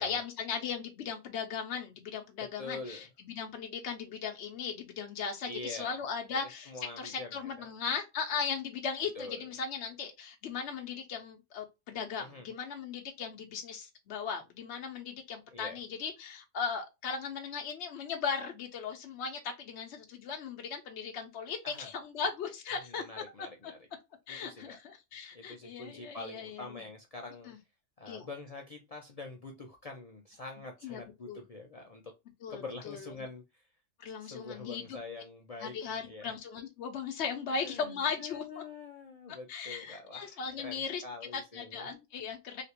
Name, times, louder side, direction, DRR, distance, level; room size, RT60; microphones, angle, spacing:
voice 1, 0.0-6.7 7.0-23.0 24.3-26.6 27.5-27.6 28.1-28.3 30.8-31.0 31.3-31.4 32.4-33.0 34.0-34.8 35.6-38.6 39.5-41.0 41.3-42.6, left 6 dB, 65° left, 0.9 m, -37 dB
voice 2, 2.6-3.1 5.5-6.0 6.3-7.7 9.1-9.5 12.2-12.5 15.5-15.8 21.6-21.9 22.8-23.8 24.3-24.8 25.3-27.5 28.0-32.1 32.5-33.6 34.2-36.3 37.5-41.9, left 3 dB, 50° left, 0.4 m, -45 dB
3.3 x 2.9 x 2.7 m
omnidirectional pair, 1.3 m